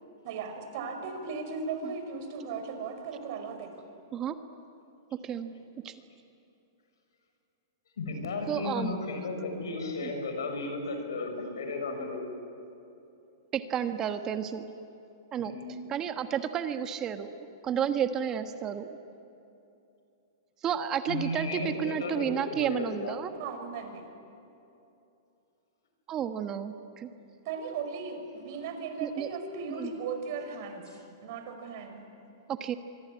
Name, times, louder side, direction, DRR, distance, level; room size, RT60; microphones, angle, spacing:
voice 1, 0.2-3.7 23.4-24.0 27.4-30.9 31.2-32.1, right 5 dB, 55° right, 6 dB, 5.1 m, -37 dB
voice 2, 8.0-12.2 15.4-15.8 21.1-23.1, left 3 dB, 90° left, 5 dB, 6.3 m, -34 dB
voice 3, 8.5-8.9 10.0-10.1 13.5-14.7 15.3-15.5 15.9-19.0 20.6-23.3 26.1-27.1 29.0-29.3 29.7-29.9 32.5-32.7, right 8 dB, 25° right, 8 dB, 1.3 m, -31 dB
25.0 x 23.5 x 9.9 m, 2.8 s
hypercardioid pair, 140°, 2 cm